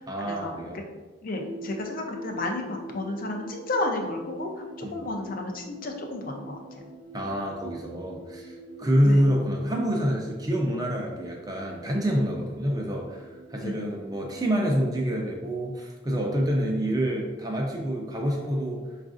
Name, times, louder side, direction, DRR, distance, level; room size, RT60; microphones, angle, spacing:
voice 1, 0.1-0.8 4.8-5.0 7.1-18.8, equal, 20° right, 0 dB, 0.6 m, -27 dB
voice 2, 1.2-6.6 9.0-9.2 13.6-13.7, left 2 dB, 45° left, 2 dB, 0.5 m, -32 dB
sound 1, 1.4-15.1, right 1 dB, 65° right, 0.5 m, -44 dB
5.0 x 2.4 x 2.5 m, 1.2 s
head